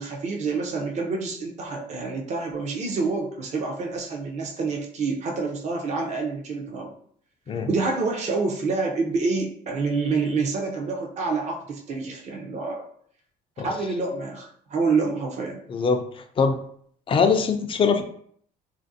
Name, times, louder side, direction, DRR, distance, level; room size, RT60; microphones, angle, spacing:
voice 1, 0.0-6.9 7.7-12.9 13.6-15.6, right 4 dB, 45° right, 0 dB, 0.5 m, -27 dB
voice 2, 15.7-16.0 16.4-16.6 17.1-18.0, left 5 dB, 30° left, 6 dB, 0.4 m, -21 dB
3.3 x 2.5 x 2.6 m, 0.62 s
cardioid pair, 110°, 17 cm